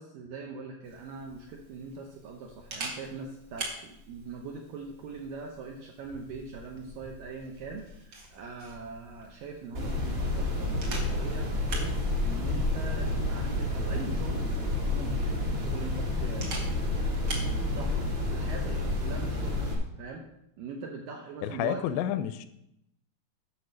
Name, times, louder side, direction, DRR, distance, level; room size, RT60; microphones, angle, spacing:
voice 1, 0.0-17.0 17.4-19.6 20.0-20.2 20.6-21.8, right 4 dB, 80° right, 2 dB, 2.0 m, -42 dB
Camera, 0.8-17.5, right 1 dB, 65° right, 1.1 m, -43 dB
sound 1, 9.7-19.7, left 2 dB, 40° right, 1.7 m, -30 dB
voice 2, 21.4-22.5, left 11 dB, 85° left, 12 dB, 2.8 m, -30 dB
8.6 x 6.3 x 6.3 m, 0.80 s
omnidirectional pair, 5.0 m